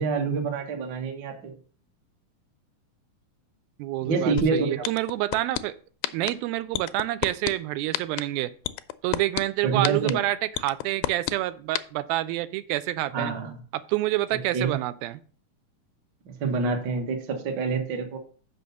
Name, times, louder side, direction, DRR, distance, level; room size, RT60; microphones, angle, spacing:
voice 1, 0.0-1.5 4.0-4.9 9.6-10.2 13.1-13.6 14.5-14.7 16.4-18.2, right 4 dB, 65° right, 3 dB, 1.1 m, -27 dB
voice 2, 3.8-5.8 6.1-8.5 9.0-13.3 13.7-15.2, right 15 dB, 90° right, 14 dB, 2.4 m, -28 dB
sound 1, 4.4-4.5 4.8-5.6 6.0-6.3 6.7-7.5 7.9-8.2 8.6-9.4 9.8-10.1 10.5-11.3 11.7-11.8, left 17 dB, 85° left, 2.3 m, -26 dB
6.4 x 5.3 x 6.9 m, 0.43 s
omnidirectional pair, 4.2 m